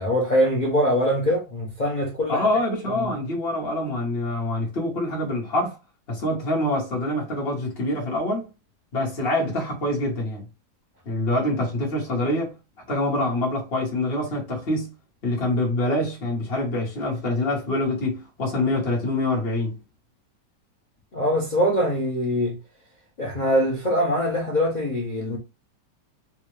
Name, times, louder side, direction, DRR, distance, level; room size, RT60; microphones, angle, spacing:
voice 1, 0.0-2.4 2.9-3.1 21.1-22.6 23.2-25.4, equal, 55° left, 0.5 m, -23 dB
voice 2, 2.3-5.8 6.1-8.5 8.9-10.5 11.0-12.5 12.9-14.9 15.2-19.8, left 1 dB, 40° left, 1.2 m, -25 dB
3.6 x 2.3 x 3.1 m
omnidirectional pair, 1.9 m